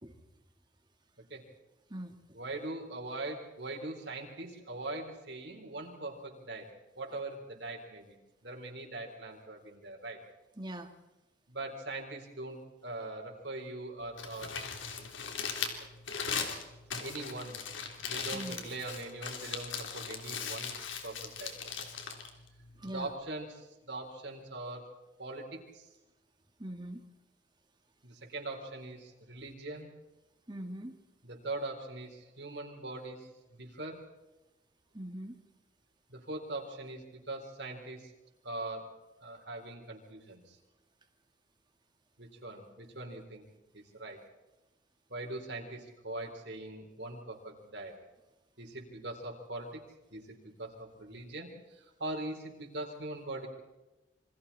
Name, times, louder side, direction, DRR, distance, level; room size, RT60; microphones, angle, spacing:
voice 1, 2.3-6.7 7.0-8.2 8.4-10.2 11.5-14.6 15.0-15.3 15.8-15.9 17.0-17.6 18.0-20.7 21.0-21.7 22.8-25.9 28.0-29.9 31.2-34.0 36.1-38.1 38.4-38.9 39.2-40.6 42.2-43.4 43.7-44.2 45.1-48.0 48.6-49.8 50.1-53.5, right 2 dB, 65° right, 0 dB, 4.2 m, -42 dB
voice 2, 10.6-10.9 18.3-18.7 22.8-23.1 26.6-27.0 30.5-31.0 34.9-35.4, right 1 dB, 25° right, 5 dB, 2.4 m, -41 dB
Crumpling crinkling, 14.0-23.1, left 6 dB, 85° left, 3.5 m, -39 dB
28.0 x 24.0 x 4.3 m, 1.0 s
head